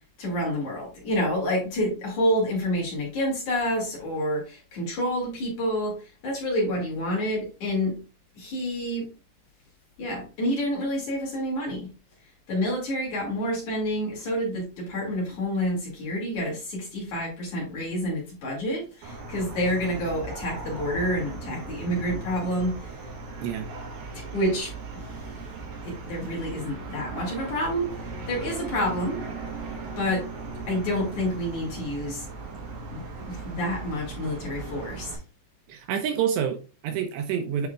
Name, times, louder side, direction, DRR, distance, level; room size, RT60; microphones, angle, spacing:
voice 1, 0.2-6.0 6.2-8.0 8.3-9.1 10.0-11.9 12.5-22.9 24.3-25.2 25.8-27.9 28.3-29.2 30.0-30.3 30.7-32.3 32.9-35.2, equal, 45° left, -2 dB, 3.4 m, -28 dB
sound 1, 19.0-35.1, right 3 dB, 70° right, 3.1 m, -38 dB
voice 2, 35.7-37.7, right 8 dB, 85° right, 6 dB, 2.6 m, -28 dB
9.4 x 4.8 x 2.4 m, 0.32 s
omnidirectional pair, 5.3 m